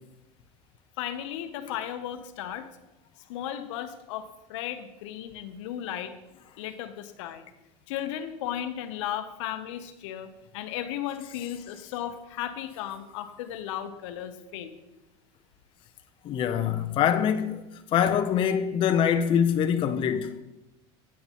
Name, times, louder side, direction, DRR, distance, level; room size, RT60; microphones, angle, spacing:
voice 1, 1.0-2.7 3.3-6.1 6.6-7.5 7.9-10.3 10.5-14.7, left 11 dB, 75° left, 0.8 m, -35 dB
voice 2, 16.2-17.6 17.9-20.4, left 8 dB, 35° left, 0.5 m, -24 dB
8.8 x 8.4 x 2.9 m
supercardioid pair, 120°, 16 cm